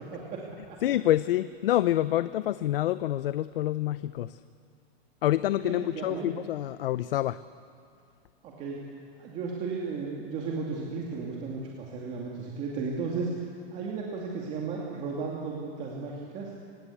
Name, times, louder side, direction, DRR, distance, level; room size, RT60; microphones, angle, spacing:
voice 1, 0.1-0.8 5.6-6.3 8.4-8.8 9.2-13.5 13.7-16.5, right 4 dB, 20° right, -3 dB, 2.3 m, -34 dB
voice 2, 0.8-4.4 5.2-7.4, left 13 dB, 65° left, 14 dB, 0.7 m, -27 dB
25.0 x 20.0 x 8.4 m, 2.4 s
supercardioid pair, 170°, 31 cm